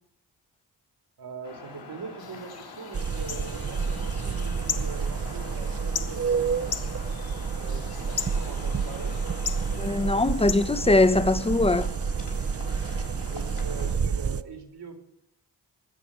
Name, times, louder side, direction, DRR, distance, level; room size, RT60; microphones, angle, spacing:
voice 1, 1.2-6.9 7.5-9.2 13.2-15.0, right 5 dB, 70° right, 2.4 m, -42 dB
sound 1, 1.4-14.0, left 4 dB, 85° left, 4.3 m, -44 dB
sound 2, 2.2-11.6, left 6 dB, 60° left, 1.2 m, -39 dB
sound 3, 2.9-14.4, right 6 dB, 35° right, 0.6 m, -29 dB
voice 2, 9.8-11.9, left 2 dB, 15° left, 0.7 m, -21 dB
19.0 x 7.6 x 7.1 m
cardioid pair, 60°, 41 cm